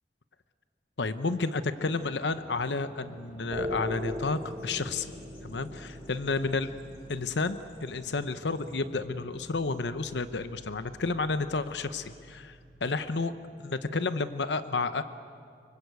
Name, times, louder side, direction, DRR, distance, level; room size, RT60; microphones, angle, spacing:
voice 1, 1.0-5.1 5.4-6.7 7.1-12.0 12.3-12.6 12.8-13.3 13.6-15.0, left 3 dB, 90° left, 11 dB, 0.9 m, -31 dB
Bird vocalization bird call bird song, 1.5-9.9, equal, 35° left, 3.1 m, -51 dB
sound 1, 3.5-13.7, left 1 dB, 20° right, 1.3 m, -42 dB
25.5 x 23.5 x 8.3 m, 2.2 s
head